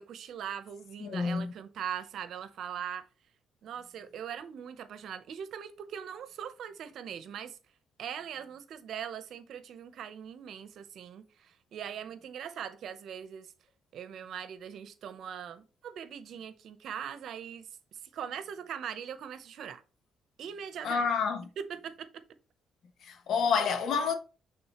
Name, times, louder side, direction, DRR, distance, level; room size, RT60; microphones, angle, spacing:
voice 1, 0.0-3.0 3.6-7.6 8.0-13.5 13.9-19.8 20.4-21.1 21.6-22.2, right 8 dB, 70° right, 0.8 m, -41 dB
voice 2, 1.0-1.5 20.8-21.5 23.0-24.1, left 5 dB, 70° left, 1.0 m, -28 dB
8.7 x 3.8 x 3.0 m
cardioid pair, 90°, 0 cm